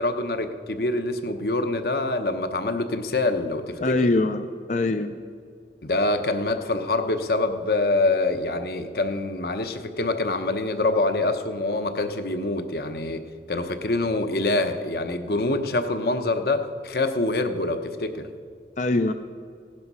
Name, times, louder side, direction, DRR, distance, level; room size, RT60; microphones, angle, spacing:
voice 1, 0.0-4.1 5.8-13.2 13.5-18.3, left 2 dB, 60° left, 8 dB, 1.0 m, -25 dB
voice 2, 3.8-5.1 18.8-19.1, left 2 dB, 40° left, 8 dB, 0.5 m, -23 dB
17.0 x 11.0 x 5.5 m, 2.2 s
head